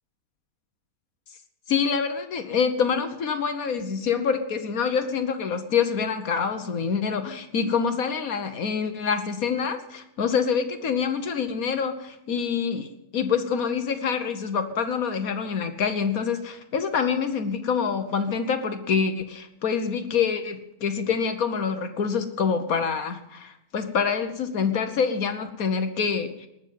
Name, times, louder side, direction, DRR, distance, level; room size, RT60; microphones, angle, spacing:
voice 1, 1.7-26.5, left 6 dB, 70° left, 8 dB, 1.5 m, -26 dB
19.5 x 7.0 x 9.3 m, 0.88 s
omnidirectional pair, 1.6 m